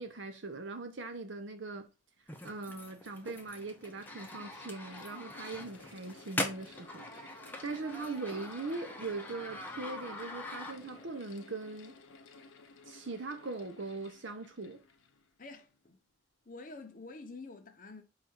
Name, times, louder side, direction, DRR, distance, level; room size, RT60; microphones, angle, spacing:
voice 1, 0.0-1.9 2.4-7.1 7.6-12.0 12.9-14.8, right 3 dB, 75° right, 0.8 m, -40 dB
Mechanical fan, 2.2-2.3 3.1-15.8, left 3 dB, 90° left, 0.6 m, -56 dB
sound 1, 2.3-11.1, left 1 dB, 10° left, 0.6 m, -43 dB
voice 2, 15.4-16.0 16.4-18.0, left 3 dB, 45° left, 0.7 m, -48 dB
4.8 x 2.4 x 4.4 m
head